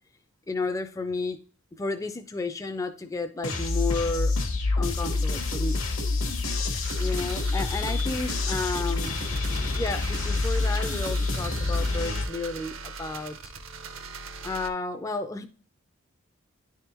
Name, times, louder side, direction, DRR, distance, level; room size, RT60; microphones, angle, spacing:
voice 1, 0.5-1.4 1.7-4.3 4.8-5.8 7.0-9.2 9.5-13.4 14.4-15.5, left 3 dB, 15° left, 7 dB, 0.3 m, -32 dB
sound 1, 3.4-12.2, left 3 dB, 70° left, 1.0 m, -27 dB
sound 2, 6.8-14.7, right 5 dB, 60° right, 0.5 m, -41 dB
10.0 x 3.5 x 2.9 m, 0.42 s
head